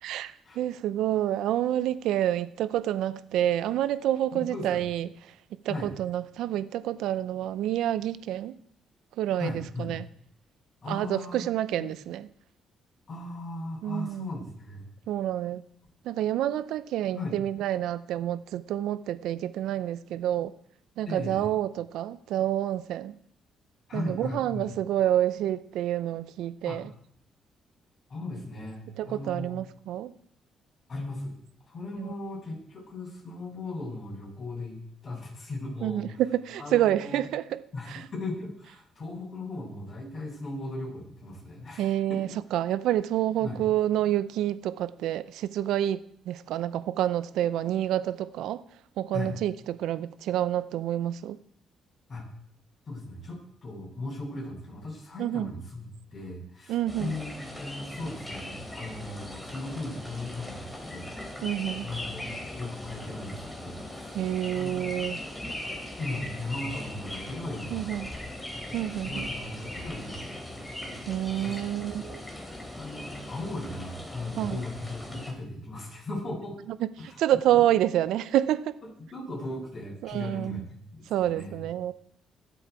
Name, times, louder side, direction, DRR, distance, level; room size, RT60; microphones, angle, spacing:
voice 1, 0.0-5.1 5.6-8.6 9.2-10.1 10.9-12.3 13.8-14.3 15.1-15.6 16.0-20.5 21.0-23.2 23.9-26.9 29.0-30.1 32.0-32.1 35.8-37.6 37.9-38.0 41.8-46.0 46.3-48.6 49.0-51.4 55.2-55.5 56.7-57.1 61.4-61.9 64.1-65.2 67.7-68.1 68.7-69.3 71.1-72.2 74.4-74.6 77.0-78.7 80.0-80.6 81.1-81.9, right 12 dB, 85° right, 15 dB, 0.6 m, -28 dB
voice 2, 4.3-4.8 5.7-5.9 9.4-9.9 10.8-11.4 11.8-12.1 13.1-14.9 17.1-17.4 21.0-21.4 23.9-24.7 26.6-26.8 28.1-29.6 30.9-31.3 31.7-36.2 36.6-37.2 37.7-42.2 43.4-43.6 49.1-49.3 52.1-52.3 52.9-61.1 61.7-62.2 62.5-64.8 65.0-65.1 65.7-68.1 68.6-71.0 71.4-71.9 72.8-76.6 77.0-77.2 77.5-77.6 79.1-81.6, left 2 dB, 40° left, -3 dB, 7.7 m, -38 dB
sound 1, 56.9-75.3, left 1 dB, 10° left, 3.4 m, -39 dB
21.5 x 7.9 x 4.7 m, 0.67 s
cardioid pair, 90°, 0 cm